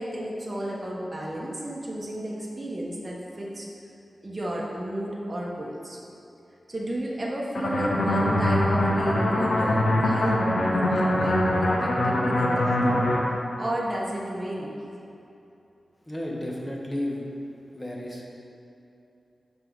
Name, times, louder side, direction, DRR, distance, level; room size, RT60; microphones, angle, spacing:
voice 1, 0.0-3.7 4.2-6.0 6.7-13.0 13.6-14.7, right 1 dB, 30° right, -4 dB, 1.0 m, -33 dB
sound 1, 7.5-13.2, left 1 dB, 80° left, 0.9 m, -23 dB
voice 2, 16.1-17.2 17.7-18.2, left 1 dB, 20° left, -2 dB, 1.1 m, -32 dB
5.9 x 5.3 x 4.7 m, 2.8 s
wide cardioid pair, 75°, 0 cm